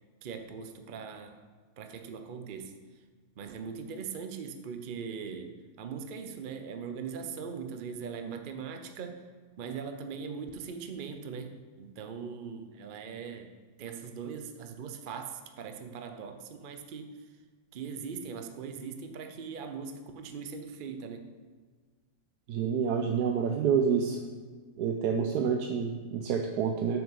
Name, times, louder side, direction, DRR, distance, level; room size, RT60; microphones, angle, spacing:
voice 1, 0.2-1.4 1.8-2.8 3.4-9.2 9.6-11.5 11.8-13.5 13.8-17.3 17.7-21.3, right 6 dB, 50° right, 6 dB, 0.6 m, -40 dB
voice 2, 22.5-24.2 24.8-27.0, right 6 dB, 80° right, 3 dB, 1.2 m, -28 dB
7.1 x 6.0 x 6.6 m, 1.5 s
omnidirectional pair, 1.7 m